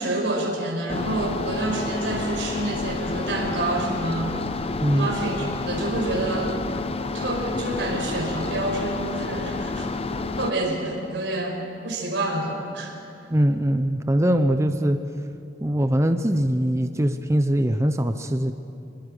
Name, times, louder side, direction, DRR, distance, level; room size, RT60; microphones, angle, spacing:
voice 1, 0.0-4.4 4.9-6.5 7.1-9.9 10.4-11.6 11.8-12.9, right 2 dB, 80° right, 0 dB, 5.4 m, -28 dB
sound 1, 0.9-10.5, left 3 dB, 35° left, 0.8 m, -29 dB
voice 2, 13.3-15.0 15.6-18.5, right 1 dB, 15° right, 8 dB, 0.7 m, -22 dB
25.0 x 22.0 x 6.7 m, 2.7 s
head